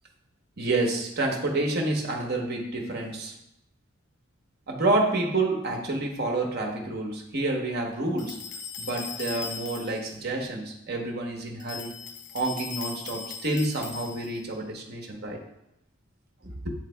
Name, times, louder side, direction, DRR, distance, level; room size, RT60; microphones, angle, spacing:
voice 1, 0.6-3.3 4.7-8.4 8.8-12.0 12.3-15.4 16.4-16.7, right 2 dB, 50° right, 1 dB, 1.0 m, -28 dB
sound 1, 8.2-10.1 11.6-14.5, left 5 dB, 40° left, 0.5 m, -39 dB
8.6 x 3.3 x 3.3 m, 0.82 s
head